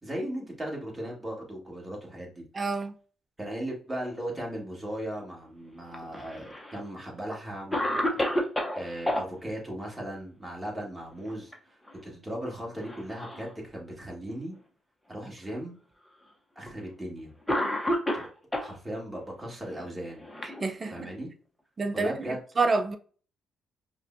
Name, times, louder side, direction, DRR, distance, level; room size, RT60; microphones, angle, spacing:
voice 1, 0.0-2.4 3.4-8.2 8.7-11.7 12.0-14.5 15.1-15.8 16.5-17.3 18.1-18.3 18.5-20.2 20.9-21.3 21.9-22.4, right 1 dB, 15° right, 1.8 m, -37 dB
voice 2, 2.5-2.9 20.4-21.1 21.8-23.0, right 3 dB, 30° right, 0.5 m, -28 dB
Cough, 5.9-6.8 7.3-7.4 7.7-9.2 11.1-11.5 11.9-12.0 12.8-13.5 14.3-14.4 15.4-15.5 16.7-16.8 17.5-18.7 19.7-21.1, left 1 dB, 10° left, 0.9 m, -30 dB
5.1 x 2.2 x 2.7 m
cardioid pair, 90°, 0 cm